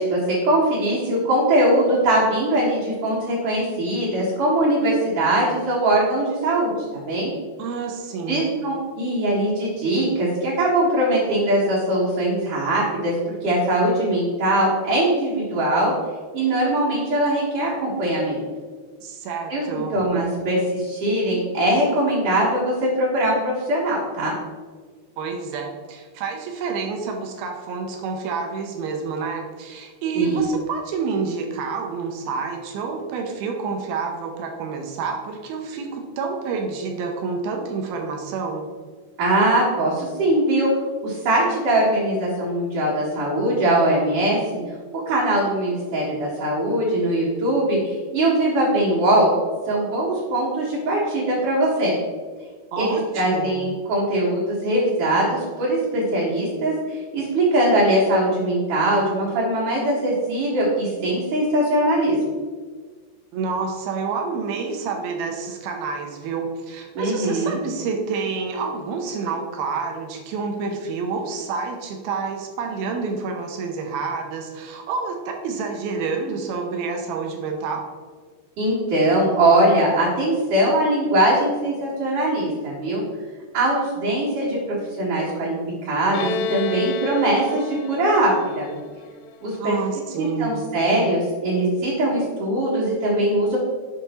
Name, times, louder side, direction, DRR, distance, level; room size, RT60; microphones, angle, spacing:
voice 1, 0.0-6.7 7.1-7.3 8.3-13.1 13.4-15.9 16.3-18.4 19.5-24.3 30.1-30.4 39.2-40.7 41.0-44.4 45.1-49.3 49.7-52.0 52.8-62.2 66.9-67.6 78.6-83.0 83.5-85.6 85.8-88.7 89.4-89.8 90.2-93.6, right 1 dB, 55° right, -9 dB, 2.7 m, -21 dB
voice 2, 7.6-8.5 19.0-19.9 25.2-38.6 52.7-53.7 63.3-77.9 89.6-90.7, right 5 dB, 75° right, 3 dB, 2.4 m, -28 dB
Bowed string instrument, 86.1-89.7, left 3 dB, 80° left, 2.3 m, -31 dB
8.0 x 5.2 x 4.3 m, 1.5 s
omnidirectional pair, 5.0 m